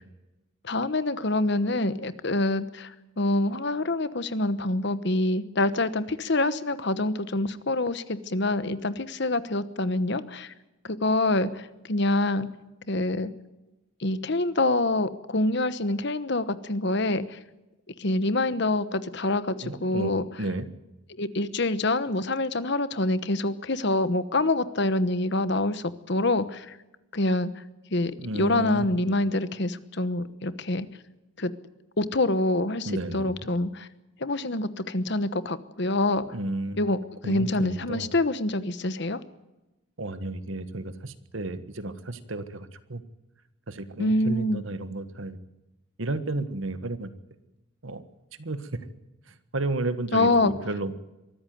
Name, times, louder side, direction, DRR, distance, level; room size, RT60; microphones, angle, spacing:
voice 1, 0.6-10.5 10.8-12.5 12.9-13.3 14.0-17.4 18.0-20.3 21.2-26.8 27.1-27.5 27.9-30.9 31.4-31.5 32.0-33.9 34.2-36.3 36.8-37.0 37.2-39.2 44.0-44.6 50.1-50.5, left 2 dB, 55° left, 14 dB, 1.1 m, -26 dB
voice 2, 19.6-20.1 20.4-20.7 28.2-29.1 32.8-33.3 36.3-36.8 37.2-38.1 40.0-43.0 43.7-45.4 46.0-47.1 47.8-48.0 48.4-48.9 49.5-50.9, right 2 dB, 70° right, 12 dB, 1.4 m, -32 dB
23.5 x 14.0 x 9.4 m, 1.0 s
head